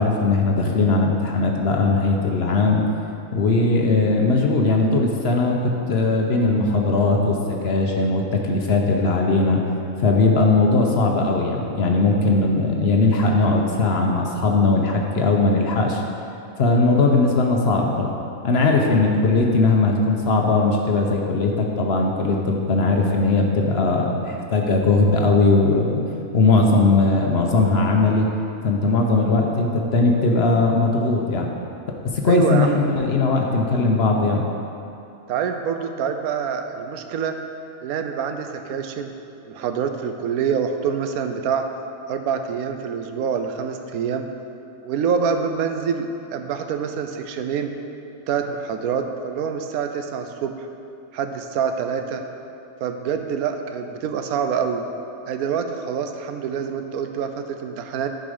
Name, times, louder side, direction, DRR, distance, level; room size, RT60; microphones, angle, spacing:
voice 1, 0.0-2.8 3.3-9.6 10.0-16.0 16.6-18.2 18.4-26.0 26.3-28.3 28.6-31.5 32.1-34.4, left 3 dB, 55° left, 1 dB, 0.8 m, -19 dB
voice 2, 32.2-32.9 35.3-37.4 37.8-39.1 39.5-41.7 42.1-44.3 44.8-47.7 48.3-50.7 51.1-52.2 52.8-54.8 55.3-58.1, right 7 dB, 90° right, 6 dB, 1.1 m, -26 dB
10.0 x 4.7 x 5.0 m, 2.7 s
omnidirectional pair, 1.5 m